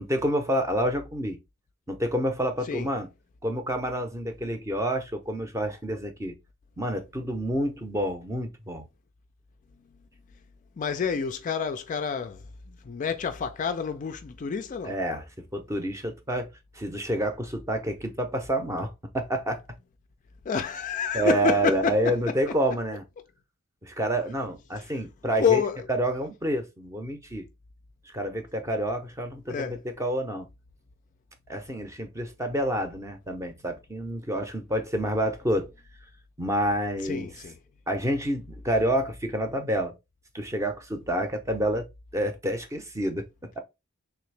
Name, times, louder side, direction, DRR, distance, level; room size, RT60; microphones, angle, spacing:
voice 1, 0.0-1.4 1.9-3.1 3.4-6.4 6.8-8.8 14.8-15.3 15.5-19.6 21.1-23.0 23.8-25.6 25.9-27.5 28.1-30.5 31.5-35.7 36.4-37.3 37.9-39.9 40.3-41.9 42.1-43.3, right 1 dB, 15° right, 0.6 m, -28 dB
voice 2, 10.8-12.4 12.8-14.9 20.5-22.1 25.4-25.8 29.5-29.8 37.0-37.5, left 6 dB, 35° left, 0.3 m, -28 dB
3.4 x 2.8 x 3.2 m
head